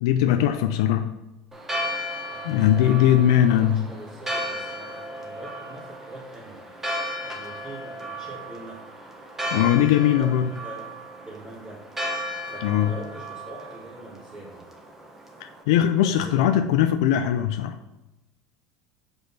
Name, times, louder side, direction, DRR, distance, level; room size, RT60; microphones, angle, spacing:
voice 1, 0.0-1.1 2.4-3.9 9.5-10.5 12.6-12.9 15.4-17.8, left 11 dB, 85° left, 7 dB, 0.4 m, -20 dB
Church bell, 1.5-15.6, equal, 10° right, 1.1 m, -35 dB
voice 2, 2.3-8.8 9.5-10.4 10.6-10.9 11.2-11.8 12.5-14.7 15.9-16.4, right 1 dB, 35° right, -6 dB, 2.0 m, -43 dB
6.1 x 5.1 x 4.1 m, 1.0 s
supercardioid pair, 120°, 3 cm